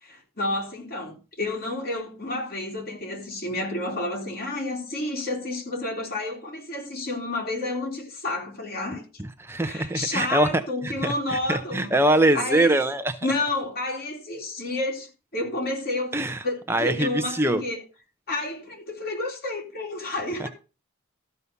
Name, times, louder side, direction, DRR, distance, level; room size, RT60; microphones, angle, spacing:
voice 1, 0.0-9.0 9.6-12.0 12.3-12.7 13.2-16.1 16.4-17.8 18.3-20.5, left 2 dB, 45° left, 3.6 m, -30 dB
voice 2, 9.4-13.1 16.1-17.6 20.4-20.5, right 1 dB, 10° right, 0.6 m, -23 dB
13.5 x 5.5 x 6.9 m
head